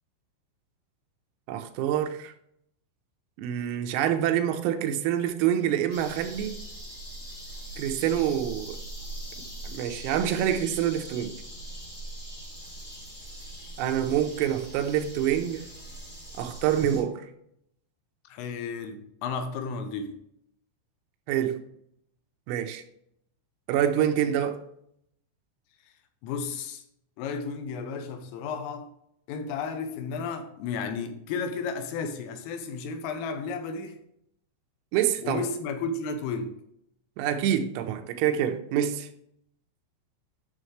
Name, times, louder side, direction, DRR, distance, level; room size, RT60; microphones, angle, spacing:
voice 1, 1.5-2.3 3.4-6.6 7.8-8.8 9.6-11.3 13.8-15.6 16.4-17.3 21.3-21.6 22.5-22.8 23.7-24.6 34.9-35.4 37.2-39.1, right 10 dB, 90° right, 6 dB, 3.5 m, -26 dB
sound 1, 5.9-17.0, right 1 dB, 25° left, 3.8 m, -41 dB
voice 2, 18.2-20.2 26.2-26.8 27.2-28.9 29.3-34.0 35.2-36.6, left 5 dB, 85° left, 7 dB, 3.4 m, -33 dB
11.0 x 6.4 x 3.2 m, 0.73 s
omnidirectional pair, 6.0 m